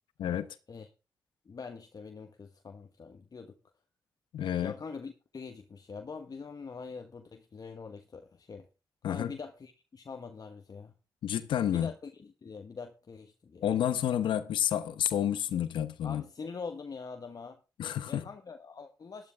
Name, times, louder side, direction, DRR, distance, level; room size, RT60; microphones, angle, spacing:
voice 1, 1.4-3.5 4.6-8.7 9.1-10.9 11.7-13.6 16.0-17.6 18.1-19.3, left 5 dB, 50° left, 1.4 m, -44 dB
voice 2, 4.3-4.7 9.0-9.3 11.2-11.9 13.6-16.2 17.8-18.2, left 10 dB, 85° left, 0.9 m, -29 dB
12.5 x 11.5 x 3.5 m
supercardioid pair, 50°, 8 cm